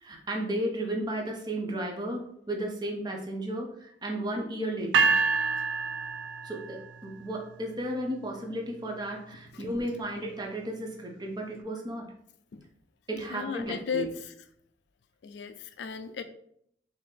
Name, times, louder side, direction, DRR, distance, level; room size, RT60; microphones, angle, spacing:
voice 1, 0.0-5.1 6.4-12.1 13.1-14.1, right 1 dB, 20° right, 1 dB, 0.6 m, -34 dB
sound 1, 4.9-7.0, right 4 dB, 80° right, 0.4 m, -26 dB
voice 2, 13.1-14.3 15.2-16.2, left 6 dB, 65° left, 10 dB, 0.4 m, -35 dB
3.7 x 2.7 x 3.4 m, 0.69 s
head